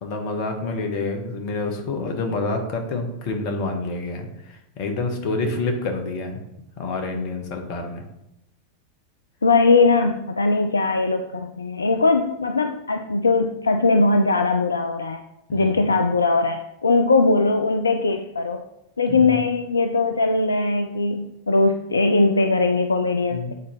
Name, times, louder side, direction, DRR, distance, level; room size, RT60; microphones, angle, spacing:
voice 1, 0.0-6.4 6.8-8.0 15.5-15.8 19.1-19.4 23.3-23.5, left 3 dB, 45° left, 4 dB, 1.1 m, -28 dB
voice 2, 9.4-15.2 15.5-18.6 19.0-23.5, left 3 dB, 75° left, 7 dB, 0.4 m, -20 dB
8.1 x 4.1 x 3.1 m, 0.85 s
figure-of-eight pair, 90°, 0 cm